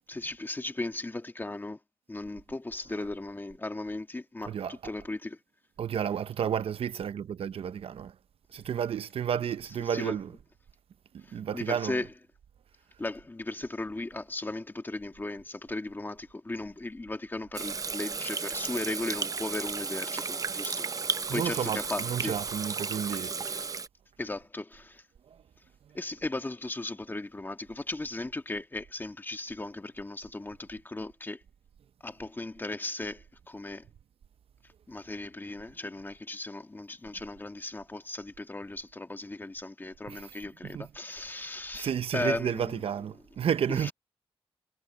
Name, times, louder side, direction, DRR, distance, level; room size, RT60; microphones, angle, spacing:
voice 1, 0.0-1.8 2.1-5.4 9.8-10.2 11.2-12.1 13.0-20.9 21.3-22.4 23.5-23.6 24.2-25.0 25.9-31.4 32.0-33.9 34.9-42.8 43.7-43.9, left 2 dB, 20° left, 1.6 m, -37 dB
voice 2, 4.4-4.9 5.8-8.1 8.5-10.4 11.1-12.0 21.3-23.3 40.1-40.9 41.3-43.9, right 8 dB, 75° right, 0.7 m, -32 dB
Water tap faucet / Sink (filling or washing), 17.5-23.9, right 4 dB, 35° right, 0.6 m, -34 dB
wide cardioid pair, 100°, 10 cm